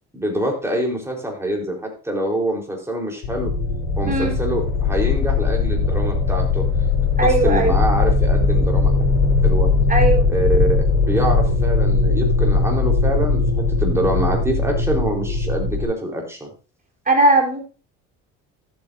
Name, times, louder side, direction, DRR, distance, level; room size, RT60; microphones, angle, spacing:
voice 1, 0.1-3.5 4.0-6.7 7.2-8.9 9.4-9.7 10.3-16.5, right 1 dB, 10° right, 0 dB, 4.4 m, -25 dB
sound 1, 3.2-15.8, left 3 dB, 75° left, 4.6 m, -19 dB
voice 2, 4.1-4.4 7.2-7.7 9.9-10.3 17.1-17.6, right 2 dB, 25° right, 0 dB, 4.2 m, -18 dB
13.5 x 8.6 x 2.8 m, 0.34 s
supercardioid pair, 85°, 31 cm